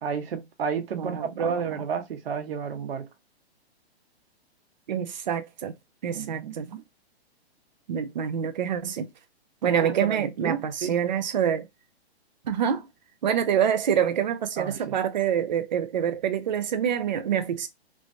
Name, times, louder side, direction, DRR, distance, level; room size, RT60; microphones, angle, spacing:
voice 1, 0.0-3.1 6.1-6.8 9.6-10.9 14.6-14.9, right 6 dB, 60° right, 1.0 m, -31 dB
voice 2, 0.9-1.6 4.9-5.7 6.0-6.7 7.9-9.1 9.6-11.7 12.4-12.9 13.2-17.7, right 8 dB, 45° right, 0.5 m, -26 dB
3.2 x 2.1 x 2.5 m
hypercardioid pair, 165°, 33 cm